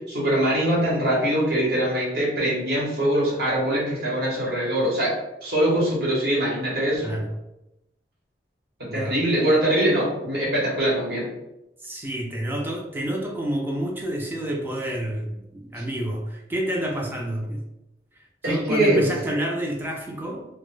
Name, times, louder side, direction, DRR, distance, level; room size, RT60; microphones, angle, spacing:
voice 1, 0.1-5.1 5.4-7.1 8.9-11.3 18.4-19.1, right 1 dB, 60° right, -5 dB, 1.0 m, -22 dB
voice 2, 11.8-17.6 18.1-20.5, right 1 dB, 10° right, 0 dB, 0.3 m, -29 dB
2.0 x 2.0 x 3.1 m, 0.91 s
head